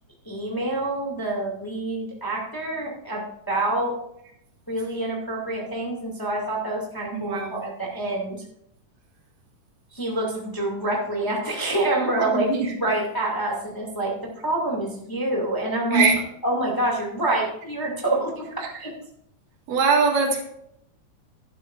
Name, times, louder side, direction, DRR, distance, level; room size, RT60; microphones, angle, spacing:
voice 1, 0.3-3.9 4.7-8.4 9.9-14.1 14.4-16.1 16.4-18.9, right 2 dB, 10° left, -2 dB, 1.7 m, -27 dB
voice 2, 7.1-7.6 12.3-12.7 15.9-16.1 18.6-18.7 19.7-20.4, right 4 dB, 85° right, 0 dB, 3.5 m, -22 dB
12.0 x 11.5 x 2.5 m, 0.73 s
omnidirectional pair, 3.6 m